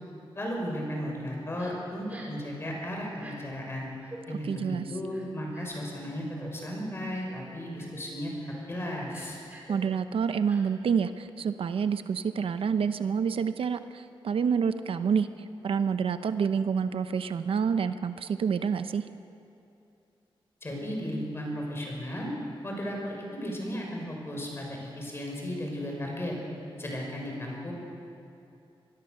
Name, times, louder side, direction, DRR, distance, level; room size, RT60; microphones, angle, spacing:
voice 1, 0.3-3.9 4.3-8.3 8.7-9.4 20.6-22.3 22.6-26.4 26.8-27.7, equal, 25° left, -1 dB, 6.0 m, -35 dB
Crying sobbing, 1.6-1.7 2.1-2.4 3.1-3.4 4.0-4.2 5.1-5.8 6.4-6.5 7.1-7.4 7.8-8.0 8.4-8.6 9.1-9.7 10.5-10.6, right 2 dB, 15° right, 4.9 m, -48 dB
voice 2, 4.4-4.9 9.7-15.3 15.6-19.0, right 6 dB, 75° right, 10 dB, 0.8 m, -28 dB
25.0 x 21.5 x 6.7 m, 2.7 s
wide cardioid pair, 145°, 9 cm